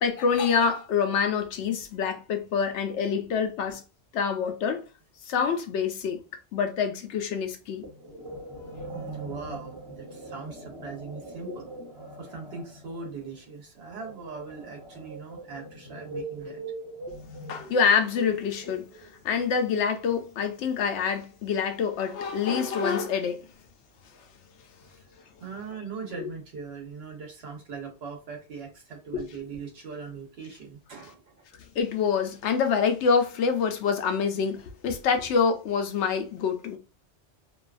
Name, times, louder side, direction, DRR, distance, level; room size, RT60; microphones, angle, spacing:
voice 1, 0.0-3.8 4.1-4.9 5.3-6.2 6.5-7.8 17.5-23.5 29.1-29.2 31.8-36.8, left 6 dB, 85° left, 0.9 m, -26 dB
sound 1, 7.8-19.2, right 2 dB, 25° right, 1.0 m, -42 dB
voice 2, 8.9-11.7 12.2-16.6 24.8-25.0 25.4-31.4, right 5 dB, 70° right, 1.1 m, -40 dB
2.7 x 2.3 x 2.3 m
omnidirectional pair, 1.1 m